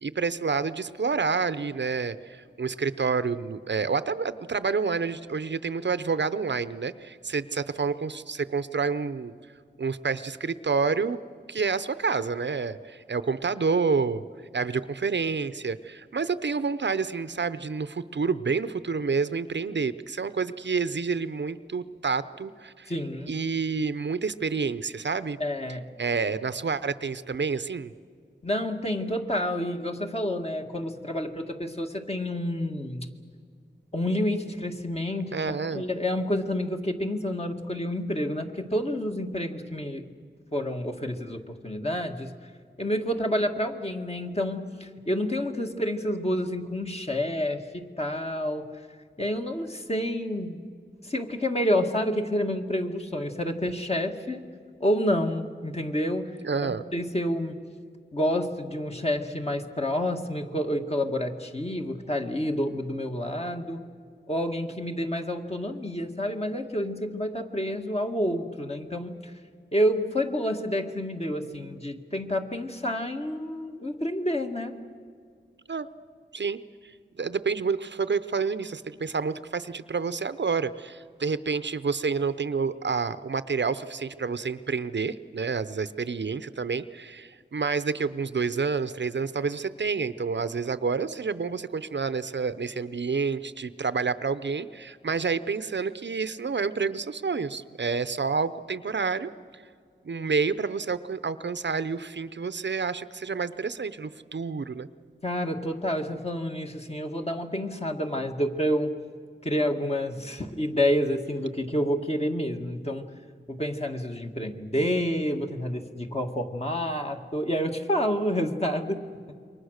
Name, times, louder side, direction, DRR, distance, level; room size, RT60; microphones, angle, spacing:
voice 1, 0.0-9.3 9.8-11.2 11.5-14.2 14.5-22.9 23.3-25.4 26.0-27.9 35.3-35.8 56.4-56.8 75.7-75.9 76.3-99.6 100.0-104.9, right 5 dB, 65° right, 13 dB, 0.7 m, -29 dB
voice 2, 22.9-23.4 25.4-25.9 28.4-33.1 33.9-40.1 40.5-42.3 42.8-48.7 49.2-50.7 51.0-54.4 54.8-56.3 56.6-57.6 58.1-63.8 64.3-69.3 69.7-74.7 105.2-108.9 109.4-113.0 113.5-119.1, equal, 30° left, 3 dB, 1.9 m, -29 dB
28.0 x 23.5 x 6.5 m, 2.1 s
wide cardioid pair, 70°, 20 cm